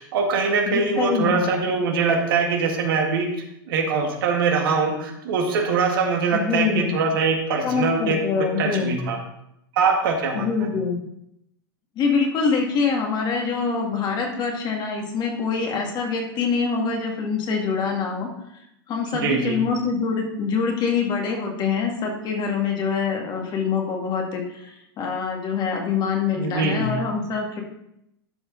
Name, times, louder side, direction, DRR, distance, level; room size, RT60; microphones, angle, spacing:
voice 1, 0.0-8.2 8.6-9.2 9.7-10.5 19.1-19.5 26.3-26.9, right 5 dB, 70° right, 2 dB, 2.0 m, -23 dB
voice 2, 0.7-1.5 6.3-6.9 7.6-8.9 10.4-11.0 12.0-18.3 18.5-27.6, left 5 dB, 35° left, 2 dB, 2.1 m, -25 dB
12.0 x 4.9 x 3.9 m, 0.79 s
hypercardioid pair, 115°, 12 cm